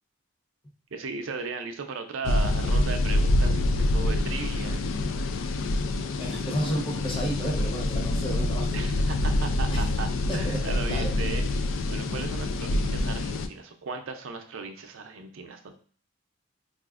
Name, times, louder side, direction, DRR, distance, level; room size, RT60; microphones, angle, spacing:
voice 1, 0.9-4.8 8.7-15.7, right 4 dB, 85° right, 6 dB, 0.5 m, -37 dB
sound 1, 2.2-13.5, left 2 dB, 80° left, 0.3 m, -26 dB
voice 2, 6.2-8.7 9.7-9.9 10.3-11.1, right 1 dB, 25° left, -2 dB, 0.9 m, -32 dB
4.8 x 2.4 x 2.4 m, 0.44 s
head